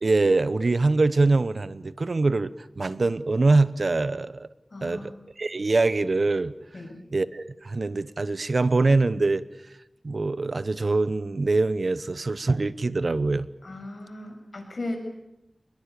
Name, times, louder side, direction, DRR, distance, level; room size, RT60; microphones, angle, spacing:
voice 1, 0.0-4.5 4.8-5.1 5.4-6.5 7.1-9.4 10.0-13.5, right 3 dB, 65° right, 16 dB, 0.9 m, -23 dB
voice 2, 4.7-5.1 6.7-7.0 13.6-15.0, left 2 dB, 65° left, 3 dB, 7.4 m, -36 dB
25.5 x 21.5 x 8.5 m, 0.89 s
wide cardioid pair, 55°, 0 cm